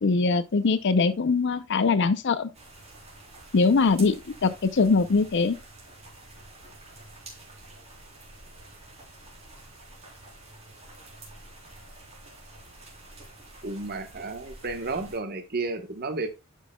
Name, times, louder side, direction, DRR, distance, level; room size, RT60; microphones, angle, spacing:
voice 1, 0.0-2.5 3.5-5.6, left 4 dB, 55° left, 0.5 m, -22 dB
sound 1, 2.5-15.2, right 2 dB, 30° right, 3.4 m, -48 dB
voice 2, 13.6-16.3, right 3 dB, 50° right, 1.1 m, -32 dB
11.0 x 5.5 x 2.2 m
head